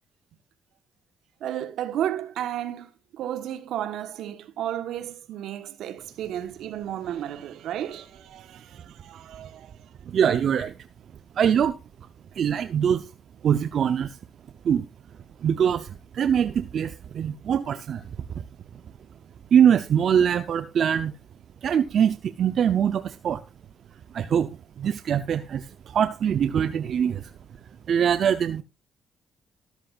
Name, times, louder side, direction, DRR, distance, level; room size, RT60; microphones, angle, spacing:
voice 1, 1.4-9.7, right 11 dB, 80° right, 1.2 m, -33 dB
voice 2, 10.1-10.7 11.4-11.7 12.3-13.1 13.4-14.2 14.6-14.9 15.4-18.0 18.4-18.5 19.5-21.1 21.6-23.4 24.1-27.3 27.9-28.6, right 8 dB, 60° right, 0.7 m, -23 dB
13.0 x 13.0 x 2.5 m
cardioid pair, 90°, 0 cm